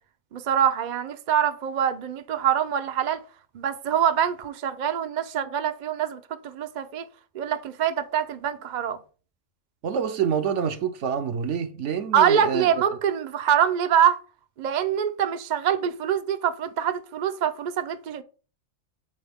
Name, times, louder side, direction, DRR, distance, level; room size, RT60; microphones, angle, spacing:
voice 1, 0.3-3.2 3.5-7.0 7.3-9.0 12.1-14.2 14.6-18.2, right 9 dB, 50° right, 0.6 m, -24 dB
voice 2, 9.8-12.7, right 7 dB, 70° right, 1.0 m, -27 dB
7.7 x 4.6 x 3.5 m
omnidirectional pair, 1.3 m